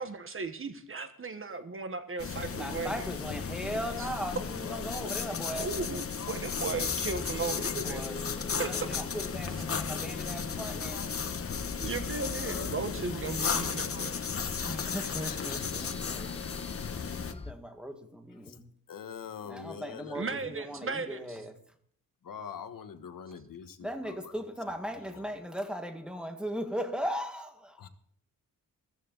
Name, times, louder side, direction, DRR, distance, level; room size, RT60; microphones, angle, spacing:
voice 1, 0.0-3.1 4.0-4.1 5.6-8.0 8.6-8.7 11.8-14.1 20.1-21.4, right 4 dB, 35° right, 1.3 m, -36 dB
sound 1, 2.2-17.3, left 6 dB, 40° left, 1.1 m, -34 dB
voice 2, 2.5-5.7 7.6-8.2 8.5-11.0 14.6-16.3 17.3-18.6 19.5-21.5 23.8-27.8, equal, 5° right, 1.8 m, -38 dB
voice 3, 4.5-4.9 11.4-13.2 15.3-16.5 18.3-18.6 18.9-20.5 22.2-24.3 25.0-25.4 27.8-27.9, left 7 dB, 65° left, 1.4 m, -45 dB
sound 2, 6.8-17.5, left 3 dB, 15° left, 0.6 m, -45 dB
15.0 x 14.5 x 4.0 m
wide cardioid pair, 125°, 35 cm